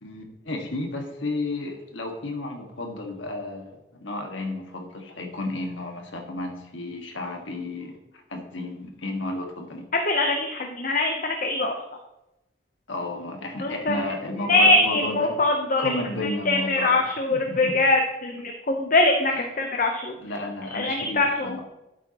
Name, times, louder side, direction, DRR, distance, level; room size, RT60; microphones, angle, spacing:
voice 1, 0.0-9.9 12.9-15.4 15.8-17.7 20.2-21.6, left 2 dB, 80° left, 3 dB, 1.7 m, -33 dB
voice 2, 9.9-11.7 13.6-14.1 14.5-16.0 16.2-20.1 20.7-21.6, left 2 dB, 40° left, 3 dB, 0.8 m, -23 dB
11.5 x 8.2 x 3.0 m, 0.91 s
head